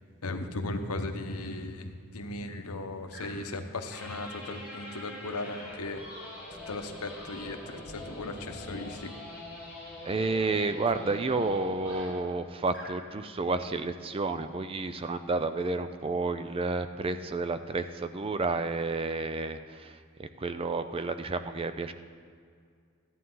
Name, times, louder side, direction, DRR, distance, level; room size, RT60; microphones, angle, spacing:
voice 1, 0.2-1.9 2.1-6.0 6.7-7.8 8.1-9.1, left 2 dB, 85° left, 6 dB, 0.9 m, -36 dB
sound 1, 1.3-1.5 3.1-3.5 3.9-12.3 12.7-13.0, equal, 5° right, 3.2 m, -44 dB
voice 2, 10.0-19.9 20.2-21.9, right 3 dB, 25° right, 10 dB, 0.4 m, -31 dB
13.5 x 11.0 x 3.8 m, 2.1 s
head